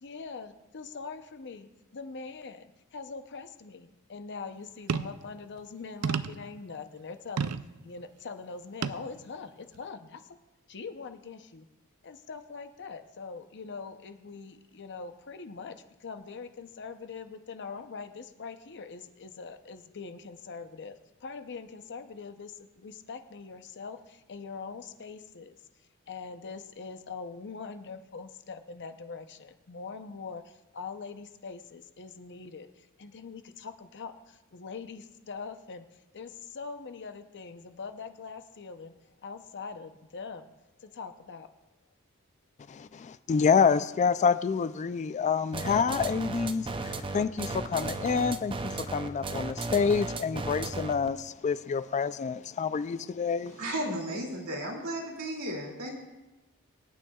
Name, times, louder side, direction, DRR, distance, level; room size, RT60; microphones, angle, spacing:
voice 1, 0.0-7.5 7.8-10.2 10.7-11.7 12.0-15.7 16.0-20.9 21.2-25.6 26.1-35.9 36.1-38.9 39.2-40.5 40.8-41.5, left 5 dB, 55° left, 0.7 m, -42 dB
sound 1, 4.9-5.2 6.0-6.5 7.4-7.7 8.8-9.1 9.7-9.8, right 6 dB, 90° right, 0.5 m, -30 dB
voice 2, 42.7-53.6, left 6 dB, 35° left, 0.3 m, -28 dB
sound 2, 45.5-51.1, right 3 dB, 25° right, 0.5 m, -35 dB
voice 3, 53.6-55.9, right 1 dB, 75° right, 2.5 m, -34 dB
24.5 x 9.1 x 2.3 m
head